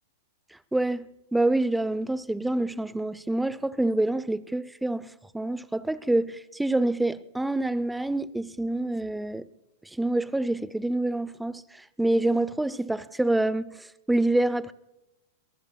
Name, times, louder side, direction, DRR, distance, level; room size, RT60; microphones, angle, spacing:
voice 1, 0.7-9.5 9.9-14.7, right 2 dB, 5° right, 0.6 m, -27 dB
23.5 x 19.0 x 2.3 m
hypercardioid pair, 125°, 0 cm